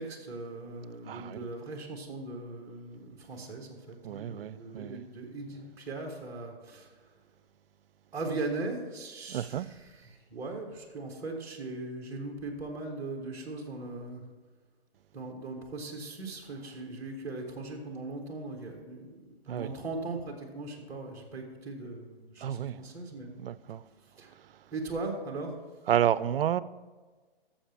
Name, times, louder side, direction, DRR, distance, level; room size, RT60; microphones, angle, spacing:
voice 1, 0.0-7.1 8.1-14.2 15.1-23.3 24.0-24.3 24.7-25.6, right 3 dB, 10° right, 1.3 m, -39 dB
voice 2, 1.1-1.4 4.0-5.0 9.3-9.7 19.5-19.7 22.4-22.8 23.4-23.8 25.9-26.6, right 10 dB, 70° right, 0.5 m, -30 dB
12.5 x 7.2 x 3.5 m
hypercardioid pair, 155°, 31 cm